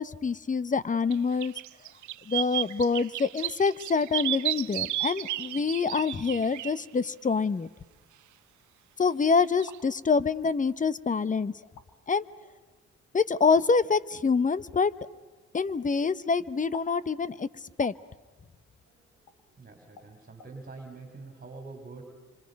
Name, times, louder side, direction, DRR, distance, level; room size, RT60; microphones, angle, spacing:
voice 1, 0.0-1.5 2.3-7.7 9.0-11.5 12.1-12.2 13.1-14.9 15.5-17.5 17.8-17.9, left 5 dB, 25° left, 18 dB, 0.8 m, -26 dB
sound 1, 1.1-1.2 1.4-6.8 9.6-9.8, right 15 dB, 75° right, 0.7 m, -33 dB
sound 2, 9.4-9.8 10.7-10.8 11.6-11.9 13.5-13.6 15.6-15.8 16.7-17.0 17.8-18.0 19.3-19.4 20.0-20.1 20.4-20.5, left 6 dB, 75° left, 1.8 m, -46 dB
voice 2, 19.5-22.0, right 3 dB, 30° right, 3 dB, 3.2 m, -45 dB
26.5 x 25.5 x 5.3 m, 1.3 s
cardioid pair, 90°, 30 cm